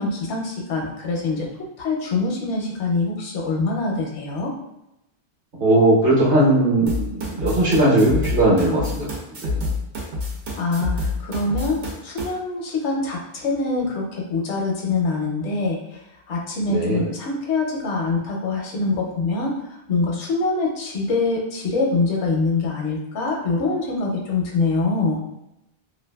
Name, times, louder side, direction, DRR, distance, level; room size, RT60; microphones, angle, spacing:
voice 1, 0.0-1.5 1.8-4.5 10.6-15.8 16.3-19.5 19.9-25.2, left 3 dB, 80° left, 0 dB, 0.9 m, -24 dB
voice 2, 5.6-9.1 9.4-9.6 16.7-17.1, right 1 dB, 55° right, -6 dB, 0.9 m, -18 dB
sound 1, 6.9-12.3, left 2 dB, 85° right, 1.0 m, -27 dB
2.6 x 2.4 x 2.2 m, 0.87 s
omnidirectional pair, 1.2 m